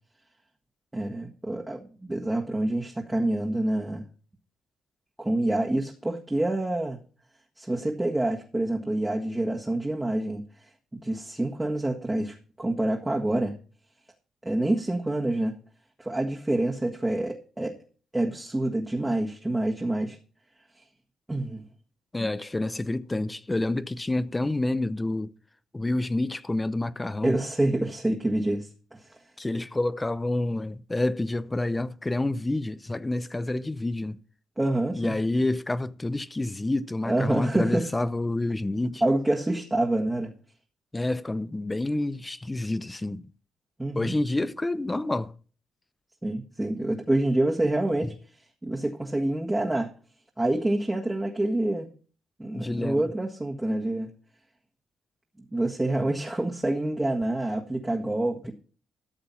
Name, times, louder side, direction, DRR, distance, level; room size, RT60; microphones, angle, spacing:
voice 1, 0.9-4.0 5.2-7.0 7.6-13.6 14.4-15.5 16.0-17.7 18.1-20.2 21.3-21.6 22.2-22.3 27.2-29.2 34.6-35.2 37.1-37.9 39.0-40.3 43.8-44.1 46.2-48.1 48.6-49.9 50.4-51.9 52.4-54.1 55.5-58.5, right 1 dB, 15° right, 1.6 m, -27 dB
voice 2, 22.1-25.3 25.7-27.4 29.4-34.2 34.9-39.0 40.9-43.3 44.0-45.3 52.5-53.1, left 2 dB, 15° left, 0.6 m, -28 dB
13.5 x 6.8 x 5.7 m
cardioid pair, 90°, 0 cm